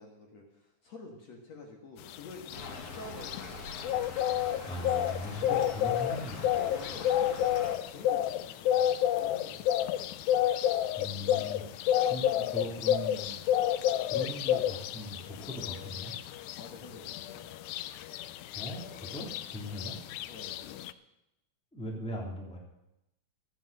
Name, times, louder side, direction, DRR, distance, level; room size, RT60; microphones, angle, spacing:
voice 1, 0.0-3.8 5.4-5.8 6.5-10.0 16.4-17.7 19.7-20.0 20.3-20.7, left 3 dB, 60° left, 1 dB, 2.6 m, -48 dB
sound 1, 2.1-20.9, left 11 dB, 80° left, 1.9 m, -30 dB
Stream / Trickle dribble, 2.5-7.8, left 3 dB, 40° left, 1.4 m, -44 dB
voice 2, 4.6-6.4 11.0-13.4 14.0-16.1 18.5-19.9 21.7-22.6, equal, ahead, -2 dB, 2.4 m, -40 dB
13.5 x 9.7 x 6.6 m, 0.90 s
omnidirectional pair, 3.7 m